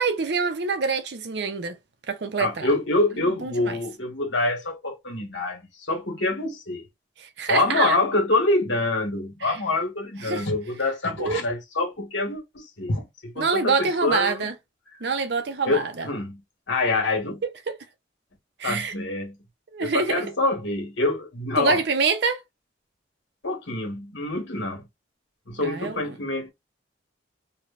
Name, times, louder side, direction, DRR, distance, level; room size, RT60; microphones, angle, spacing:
voice 1, 0.0-1.8 2.1-2.7 3.2-3.8 7.2-8.0 9.4-9.6 10.2-10.5 11.2-11.4 13.4-14.5 15.0-16.1 17.4-17.8 18.6-18.9 19.7-20.2 21.6-22.4 25.6-26.0, right 4 dB, 60° right, 0.6 m, -26 dB
voice 2, 2.4-6.8 7.5-14.5 15.6-16.4 16.7-17.4 18.6-19.4 19.8-21.8 23.4-24.8 25.5-26.5, left 2 dB, 75° left, 1.5 m, -26 dB
3.0 x 2.2 x 2.5 m
head